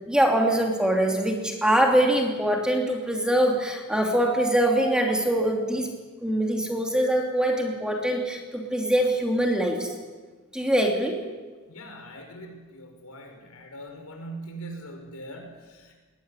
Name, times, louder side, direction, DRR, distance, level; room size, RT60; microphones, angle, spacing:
voice 1, 0.1-5.9 6.2-9.9 10.5-11.2, right 1 dB, 5° right, 1 dB, 2.9 m, -23 dB
voice 2, 11.7-16.0, right 1 dB, 80° left, 4 dB, 5.7 m, -41 dB
20.5 x 20.0 x 9.9 m, 1.4 s
head